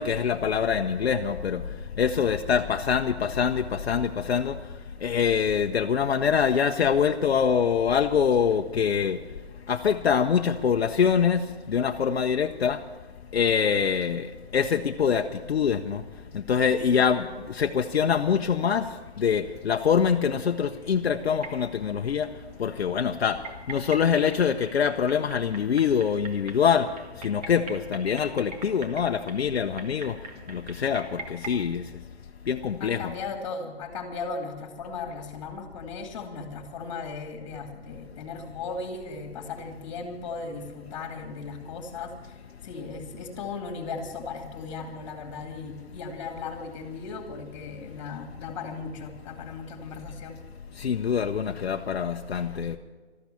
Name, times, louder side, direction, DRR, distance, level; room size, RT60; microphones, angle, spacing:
voice 1, 0.0-9.2 9.7-12.8 13.3-16.0 16.3-30.2 30.5-32.0 32.4-33.1 50.7-52.8, left 7 dB, 65° left, 5 dB, 0.8 m, -25 dB
voice 2, 16.7-17.1 32.8-50.4, left 4 dB, 30° left, 5 dB, 2.3 m, -37 dB
Symph of kitchen things, 21.3-31.7, right 3 dB, 35° right, 1.7 m, -44 dB
13.0 x 13.0 x 7.0 m, 1.4 s
hypercardioid pair, 160°, 33 cm